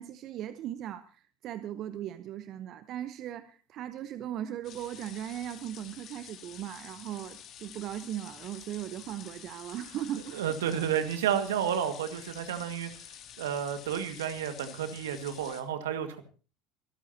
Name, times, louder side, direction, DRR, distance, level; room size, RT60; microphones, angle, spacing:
voice 1, 0.0-10.5, right 11 dB, 50° right, 11 dB, 1.0 m, -38 dB
sound 1, 4.6-15.6, left 10 dB, 50° left, 2.6 m, -49 dB
voice 2, 10.3-12.9 13.4-16.2, right 9 dB, 80° right, 8 dB, 1.9 m, -31 dB
24.5 x 13.5 x 2.9 m, 0.36 s
hypercardioid pair, 70°, 0 cm